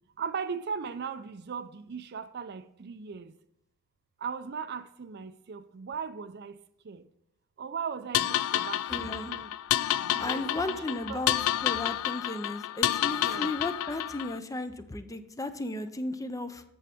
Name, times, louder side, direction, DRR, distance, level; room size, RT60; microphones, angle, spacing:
voice 1, 0.2-3.3 4.2-6.6 6.8-7.0 7.6-9.5 10.0-11.2 13.2-13.6, right 6 dB, 50° right, 0.5 m, -38 dB
sound 1, 8.1-14.4, left 13 dB, 80° left, 0.3 m, -29 dB
voice 2, 8.9-9.3 9.8-11.4 11.6-16.6, left 2 dB, 15° left, 0.5 m, -35 dB
8.4 x 7.1 x 3.5 m
head